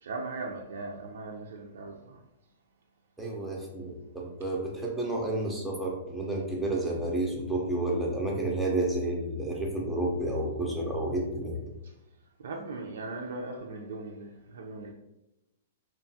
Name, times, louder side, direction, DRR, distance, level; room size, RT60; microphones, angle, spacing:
voice 1, 0.0-2.2 12.4-14.9, right 3 dB, 80° right, 0.3 m, -39 dB
voice 2, 3.2-11.6, right 1 dB, ahead, 0.4 m, -30 dB
2.8 x 2.3 x 2.7 m
hypercardioid pair, 155°, 0 cm